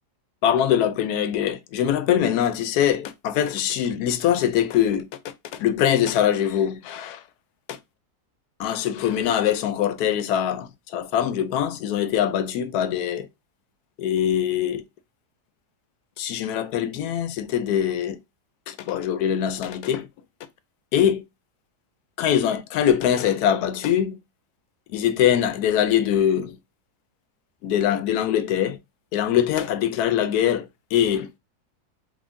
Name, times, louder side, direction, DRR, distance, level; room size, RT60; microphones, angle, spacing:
voice 1, 0.4-7.2 7.7-7.8 8.6-13.3 14.0-14.8 16.2-18.2 18.7-20.1 20.9-21.2 22.2-24.2 24.9-26.6 27.6-28.8 29.1-31.4, left 10 dB, 80° left, 1.1 m, -23 dB
3.6 x 3.5 x 2.5 m
omnidirectional pair, 1.7 m